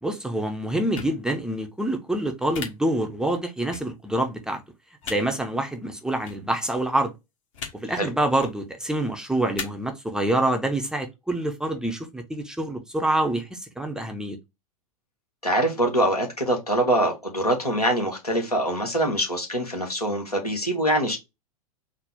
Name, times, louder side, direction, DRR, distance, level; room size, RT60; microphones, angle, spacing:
voice 1, 0.0-4.6 5.1-7.1 7.7-14.4, right 1 dB, 5° right, 0.5 m, -26 dB
sound 1, 0.9-1.1 2.5-2.7 3.7-3.8 5.0-5.2 6.2-6.4 7.5-7.7 8.3-8.5 9.6-9.7, left 6 dB, 55° left, 1.1 m, -34 dB
voice 2, 15.4-21.2, right 1 dB, 90° left, 1.3 m, -24 dB
3.9 x 2.1 x 3.4 m
figure-of-eight pair, 90°, 19 cm